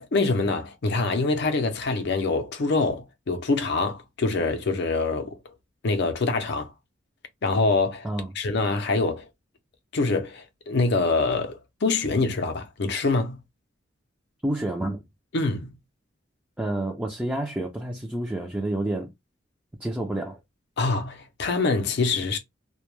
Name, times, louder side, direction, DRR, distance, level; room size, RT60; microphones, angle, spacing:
voice 1, 0.0-5.4 5.8-6.7 7.4-8.1 8.4-9.2 9.9-13.4 15.3-15.7 20.8-22.4, left 3 dB, 60° left, 0.5 m, -25 dB
voice 2, 14.4-15.0 16.6-19.1 19.8-20.4, right 1 dB, 5° right, 0.4 m, -29 dB
2.2 x 2.1 x 3.0 m
head